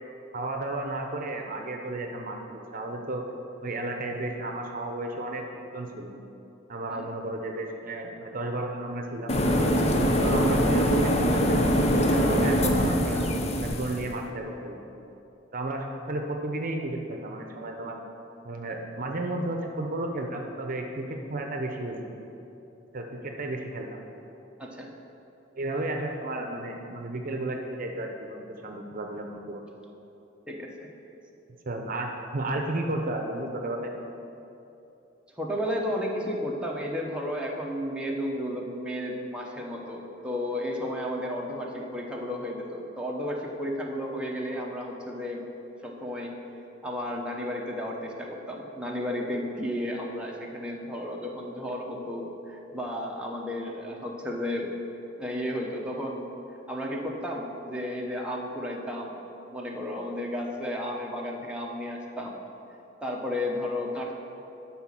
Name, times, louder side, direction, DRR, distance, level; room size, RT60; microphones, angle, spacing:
voice 1, 0.3-3.2 3.6-6.1 6.7-9.3 10.2-13.2 13.6-14.8 15.5-18.0 18.4-22.0 22.9-24.0 25.5-29.6 31.7-33.9, right 2 dB, 45° right, 3 dB, 0.7 m, -33 dB
sound 1, 9.3-14.1, equal, 35° left, 0.7 m, -23 dB
voice 2, 24.6-24.9 30.5-31.2 35.4-45.4 45.8-46.3 46.8-54.7 55.2-56.3 56.7-59.2 59.5-62.4 63.0-64.1, left 1 dB, 5° right, -2 dB, 0.8 m, -33 dB
10.0 x 4.2 x 7.4 m, 2.9 s
head